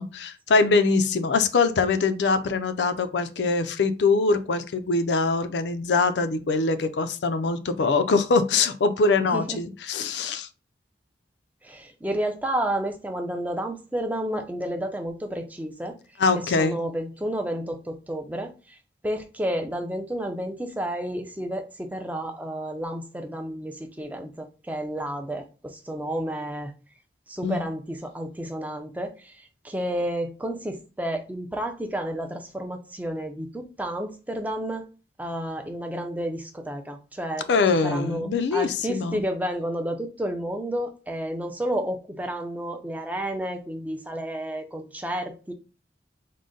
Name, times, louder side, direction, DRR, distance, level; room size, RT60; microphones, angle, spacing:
voice 1, 0.0-10.5 16.2-16.8 27.4-27.6 37.5-39.2, left 4 dB, 75° left, 0.4 m, -23 dB
voice 2, 9.2-9.6 11.6-16.0 16.4-18.8 19.0-26.7 27.3-34.8 35.2-45.5, right 1 dB, 10° right, 0.4 m, -31 dB
3.8 x 2.1 x 3.7 m
head